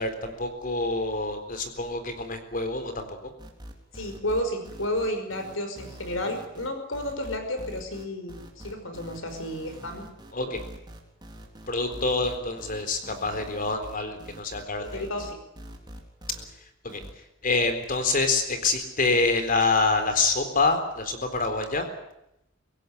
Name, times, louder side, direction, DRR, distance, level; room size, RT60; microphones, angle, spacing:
voice 1, 0.0-3.3 10.3-10.6 11.7-15.0 16.8-17.0 17.4-21.9, left 3 dB, 45° left, 8 dB, 3.9 m, -26 dB
sound 1, 3.4-16.5 16.9-17.1, equal, 20° right, 3.8 m, -44 dB
voice 2, 3.9-10.1 10.5-10.6 14.8-15.4, left 1 dB, 75° left, 7 dB, 5.4 m, -32 dB
24.5 x 16.5 x 9.6 m, 0.84 s
head